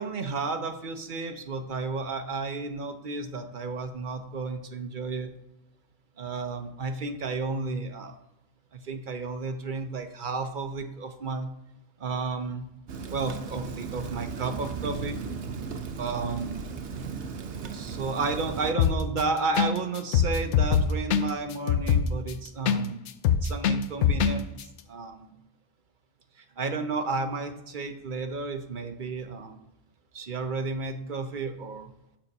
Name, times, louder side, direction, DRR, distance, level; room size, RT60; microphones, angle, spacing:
voice 1, 0.0-5.3 6.2-8.2 8.7-11.5 12.0-12.7 13.1-15.2 16.0-16.7 17.7-23.1 23.4-24.5 24.9-25.3 26.6-29.6 30.1-31.9, right 3 dB, 50° right, 7 dB, 0.9 m, -32 dB
Rain, 12.9-18.7, right 5 dB, 80° right, 1.1 m, -36 dB
sound 1, 18.8-19.2 19.6-19.7 20.0-22.8 23.1-24.3 24.6-24.7, left 8 dB, 90° left, 0.9 m, -22 dB
7.2 x 6.9 x 5.4 m, 0.87 s
omnidirectional pair, 1.1 m